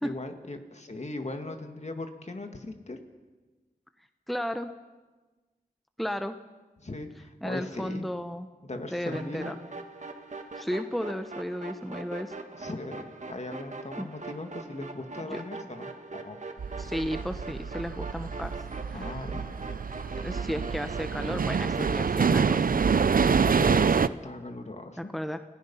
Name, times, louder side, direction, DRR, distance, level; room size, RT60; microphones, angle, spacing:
voice 1, 0.0-3.0 6.8-8.1 8.6-9.6 12.6-16.4 18.9-19.4 23.4-25.0, left 2 dB, 50° left, 5 dB, 2.2 m, -38 dB
voice 2, 4.3-4.7 6.0-6.4 7.4-8.5 8.9-9.5 10.5-12.3 14.0-14.1 15.2-15.4 16.8-18.5 18.9-19.1 20.2-22.8 25.0-25.4, equal, ahead, 8 dB, 0.9 m, -33 dB
sound 1, 9.1-21.9, right 3 dB, 50° right, 1.8 m, -42 dB
sound 2, 16.6-24.1, right 6 dB, 70° right, 0.6 m, -26 dB
29.5 x 17.0 x 5.7 m, 1.2 s
wide cardioid pair, 60°, 15 cm